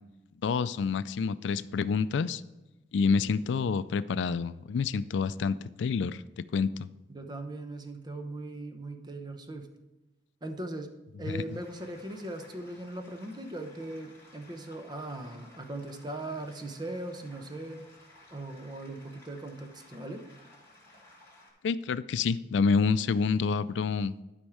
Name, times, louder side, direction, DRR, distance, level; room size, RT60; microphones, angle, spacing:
voice 1, 0.4-2.4 2.9-6.7 11.3-11.4 21.6-24.1, left 5 dB, 75° left, 17 dB, 0.3 m, -28 dB
voice 2, 7.1-9.7 10.4-10.9 11.2-17.9 18.3-20.2, right 2 dB, 25° right, 6 dB, 0.8 m, -39 dB
sound 1, 11.3-21.5, left 1 dB, 15° left, 2.7 m, -57 dB
12.0 x 5.3 x 4.8 m, 1.0 s
head